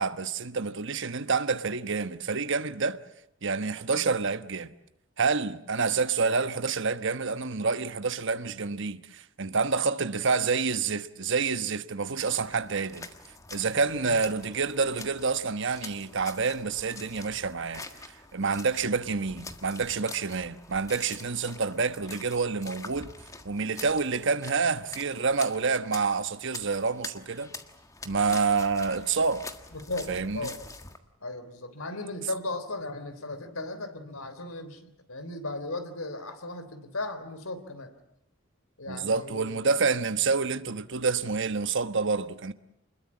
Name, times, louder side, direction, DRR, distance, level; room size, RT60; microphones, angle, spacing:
voice 1, 0.0-3.0 3.4-4.7 5.2-13.1 13.5-23.1 23.4-27.5 28.0-29.5 30.1-30.5 38.9-42.5, right 4 dB, 60° right, 1.2 m, -28 dB
sound 1, 12.1-31.0, left 3 dB, 15° left, 1.5 m, -46 dB
voice 2, 13.9-14.2 29.7-30.6 31.2-37.9 38.8-39.6, left 2 dB, 85° left, 3.5 m, -36 dB
27.0 x 21.0 x 8.6 m
head